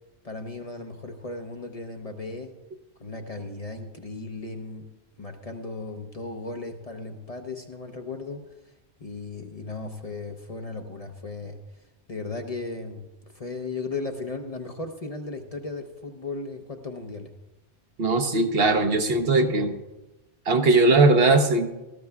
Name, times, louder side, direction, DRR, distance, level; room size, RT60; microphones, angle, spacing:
voice 1, 0.2-2.5 3.0-4.9 5.2-8.5 9.0-11.6 12.1-13.1 13.3-17.3, left 3 dB, 40° left, 4 dB, 0.7 m, -36 dB
voice 2, 18.0-19.7 20.5-21.7, right 3 dB, 65° right, 6 dB, 1.1 m, -19 dB
18.5 x 13.0 x 2.3 m, 1.0 s
omnidirectional pair, 1.1 m